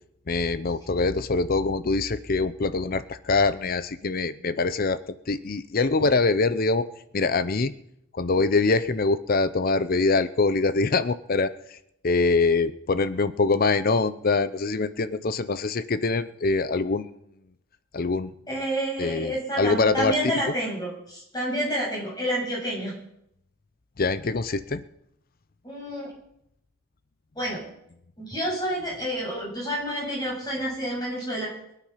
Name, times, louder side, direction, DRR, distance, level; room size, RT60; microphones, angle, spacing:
voice 1, 0.3-6.9 7.1-7.7 8.1-11.8 12.0-17.1 17.9-18.4 19.0-20.1 24.0-24.8, left 3 dB, 40° left, 14 dB, 0.6 m, -24 dB
voice 2, 18.5-22.9 25.6-26.1 27.3-27.6 28.2-31.5, equal, 20° left, -4 dB, 7.3 m, -29 dB
22.0 x 9.3 x 5.8 m, 0.77 s
head